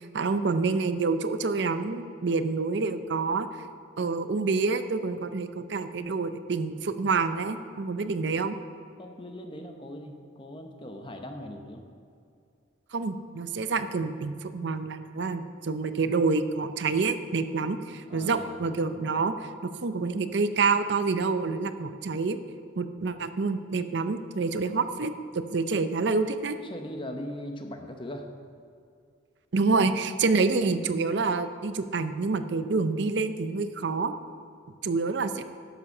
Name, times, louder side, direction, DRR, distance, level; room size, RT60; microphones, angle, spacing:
voice 1, 0.0-3.5 4.0-8.6 12.9-19.3 19.8-22.4 22.8-26.6 29.5-34.1 34.8-35.4, right 4 dB, 60° right, 10 dB, 0.5 m, -27 dB
voice 2, 9.0-11.8 18.1-18.5 26.6-28.3 29.7-29.8, left 1 dB, 25° left, 5 dB, 0.8 m, -40 dB
11.0 x 7.3 x 5.5 m, 2.4 s
head